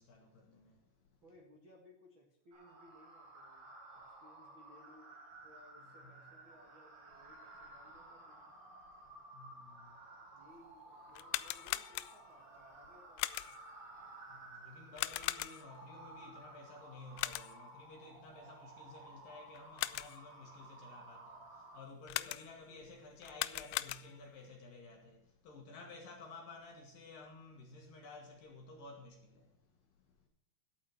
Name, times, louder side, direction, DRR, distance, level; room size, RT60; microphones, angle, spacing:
voice 1, 0.1-0.6 6.0-6.1 9.4-9.5 14.6-21.4 21.7-25.2 25.4-29.2, left 3 dB, 60° left, 2.7 m, -53 dB
voice 2, 1.2-5.2 5.4-8.6 10.3-13.7, left 1 dB, 50° right, 1.5 m, -63 dB
sound 1, 2.5-21.8, right 2 dB, 70° right, 5.4 m, -55 dB
sound 2, 11.1-12.4 13.2-13.7 15.0-15.8 17.2-17.7 19.5-20.3 22.1-22.7 23.2-24.4, left 18 dB, 85° left, 2.5 m, -39 dB
12.0 x 8.7 x 6.4 m
omnidirectional pair, 5.6 m